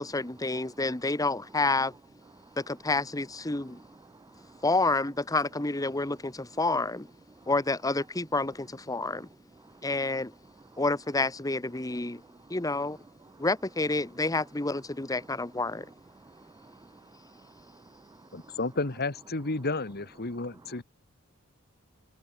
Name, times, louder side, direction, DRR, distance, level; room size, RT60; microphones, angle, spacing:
voice 1, 0.0-1.9 2.6-3.8 4.6-7.1 7.5-9.3 9.8-10.3 10.8-12.2 12.5-13.0 13.4-15.9, left 2 dB, 15° left, 1.1 m, -29 dB
voice 2, 3.7-4.6 7.4-7.5 9.0-9.1 9.6-9.8 12.3-12.6 13.3-13.4 16.1-18.6 20.7-20.8, right 3 dB, 15° right, 0.3 m, -55 dB
voice 3, 18.3-20.8, left 3 dB, 50° left, 1.7 m, -32 dB
head